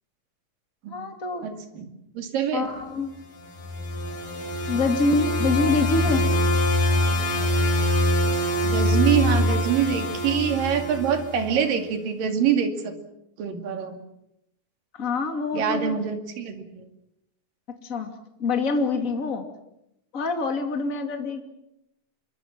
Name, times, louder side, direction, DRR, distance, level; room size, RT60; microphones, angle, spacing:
voice 1, 0.9-1.5 2.5-3.1 4.7-6.3 14.9-16.0 17.7-18.1 18.4-19.4 20.1-21.4, left 3 dB, 25° left, 5 dB, 2.6 m, -25 dB
voice 2, 1.4-1.9 2.1-2.7 8.6-12.9 13.4-14.0 15.5-16.9, right 8 dB, 80° right, 6 dB, 4.1 m, -25 dB
sound 1, 3.4-11.6, left 1 dB, 75° left, 6.0 m, -24 dB
27.0 x 24.0 x 7.4 m, 0.82 s
omnidirectional pair, 3.9 m